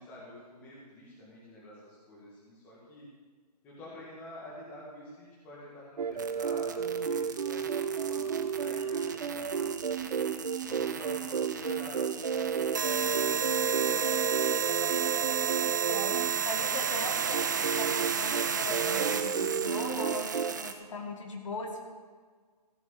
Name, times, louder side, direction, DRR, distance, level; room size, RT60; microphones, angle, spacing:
voice 1, 0.0-3.1 3.6-7.6 8.0-9.7 10.0-10.2 10.6-12.6 12.8-15.4 16.7-17.2, left 1 dB, 10° left, -6 dB, 1.8 m, -48 dB
sound 1, 6.0-16.4 17.3-20.5, right 7 dB, 70° right, 0.7 m, -32 dB
sound 2, 6.2-20.7, right 6 dB, 30° right, 0.6 m, -33 dB
voice 2, 15.7-21.8, left 2 dB, 50° left, 2 dB, 2.0 m, -39 dB
15.5 x 6.2 x 7.2 m, 1.5 s
hypercardioid pair, 175°, 21 cm